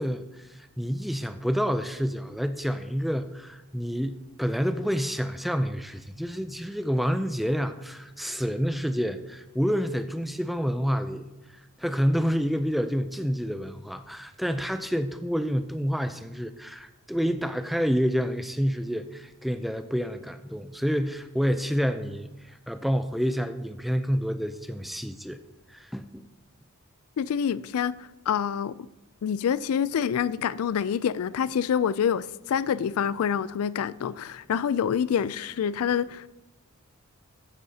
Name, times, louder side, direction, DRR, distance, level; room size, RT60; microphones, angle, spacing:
voice 1, 0.0-11.3 11.8-25.4 25.7-26.2, equal, ahead, 0.4 m, -28 dB
voice 2, 27.2-28.8 29.2-36.3, left 8 dB, 75° left, 0.3 m, -27 dB
14.0 x 10.5 x 2.8 m
head